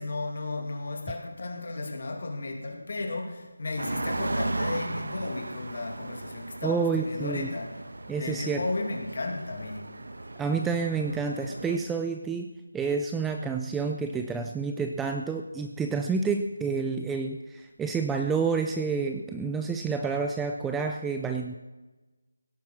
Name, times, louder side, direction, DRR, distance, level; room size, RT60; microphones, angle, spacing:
voice 1, 0.0-7.9 8.2-9.9, left 2 dB, 50° left, 2.4 m, -34 dB
sound 1, 3.8-11.8, right 2 dB, 75° right, 1.2 m, -36 dB
voice 2, 6.6-7.5 8.1-8.6 10.4-12.5 12.7-21.6, right 5 dB, 5° right, 0.3 m, -29 dB
16.5 x 8.5 x 6.4 m
figure-of-eight pair, 175°, 0 cm